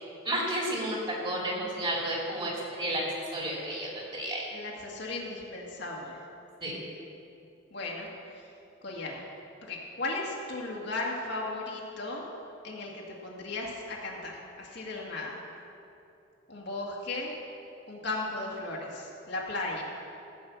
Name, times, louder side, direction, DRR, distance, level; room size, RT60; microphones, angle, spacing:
voice 1, 0.2-1.0 1.2-2.5 2.8-3.0 3.3-4.4 6.6-6.7, right 1 dB, 25° right, -4 dB, 2.9 m, -31 dB
voice 2, 4.5-6.2 7.7-8.1 8.3-8.5 8.8-9.2 9.6-12.2 12.6-15.4 16.5-17.4 17.9-19.8, left 2 dB, 60° left, -2 dB, 2.0 m, -36 dB
15.5 x 5.5 x 7.3 m, 2.7 s
head